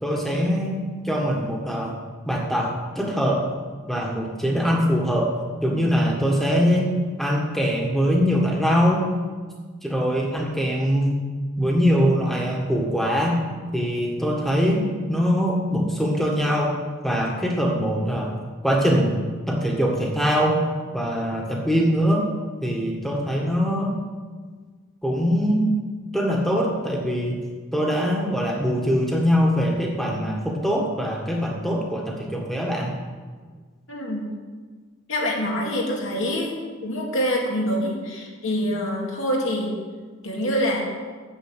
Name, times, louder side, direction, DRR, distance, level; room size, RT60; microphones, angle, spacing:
voice 1, 0.0-1.9 2.3-3.5 3.9-5.3 5.6-6.9 7.2-9.1 9.8-11.2 11.6-13.4 13.7-16.8 17.0-18.3 18.6-19.2 19.5-20.6 20.9-22.3 22.6-24.0 25.0-25.7 26.1-27.4 27.7-32.9, equal, ahead, -1 dB, 1.6 m, -22 dB
voice 2, 33.9-34.2 35.1-36.5 36.8-39.7 40.2-40.9, equal, 70° left, -2 dB, 2.3 m, -25 dB
9.1 x 7.5 x 8.1 m, 1.5 s
head